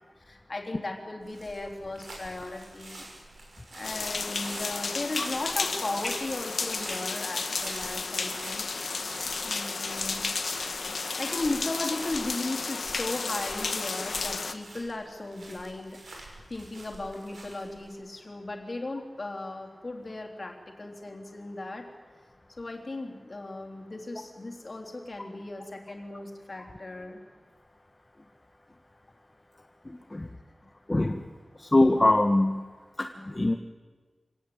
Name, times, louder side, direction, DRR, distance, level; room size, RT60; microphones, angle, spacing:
voice 1, 0.2-3.1 3.7-8.7 9.4-10.3 11.1-21.9 22.6-27.2, left 2 dB, 45° left, 2 dB, 3.7 m, -36 dB
sound 1, 1.2-17.9, right 2 dB, 80° right, 6.4 m, -47 dB
sound 2, 3.8-14.5, left 4 dB, 75° left, 1.6 m, -32 dB
voice 2, 29.9-30.3 30.9-31.2 31.6-32.6 33.0-33.5, left 2 dB, 25° left, 4 dB, 1.3 m, -23 dB
25.5 x 18.0 x 8.9 m, 1.4 s
wide cardioid pair, 95°, 0 cm